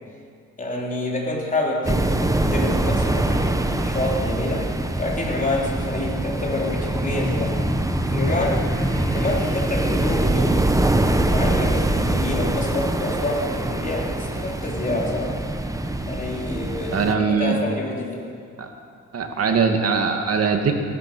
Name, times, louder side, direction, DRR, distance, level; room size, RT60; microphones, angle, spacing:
voice 1, 0.6-4.7 5.0-7.6 8.1-8.7 8.9-10.8 11.2-15.6 16.1-18.3, left 2 dB, 25° left, -2 dB, 3.9 m, -27 dB
sound 1, 1.8-17.1, right 2 dB, 10° right, 1.1 m, -24 dB
sound 2, 6.4-11.4, left 1 dB, 10° left, 1.1 m, -31 dB
voice 2, 16.9-17.6 18.6-18.7 19.1-20.8, right 5 dB, 55° right, 4 dB, 2.1 m, -21 dB
17.5 x 12.5 x 6.2 m, 2.2 s
cardioid pair, 90°, 30 cm